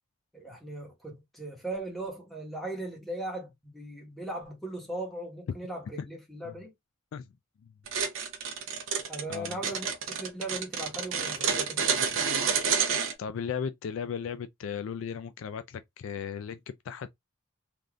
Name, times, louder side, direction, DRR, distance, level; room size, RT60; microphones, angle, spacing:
voice 1, 0.3-6.7 9.1-12.2, right 1 dB, ahead, 1.2 m, -38 dB
sound 1, 7.9-13.1, right 6 dB, 65° right, 0.7 m, -29 dB
voice 2, 9.3-9.6 13.2-17.1, left 7 dB, 65° left, 0.3 m, -36 dB
3.4 x 2.6 x 2.3 m
head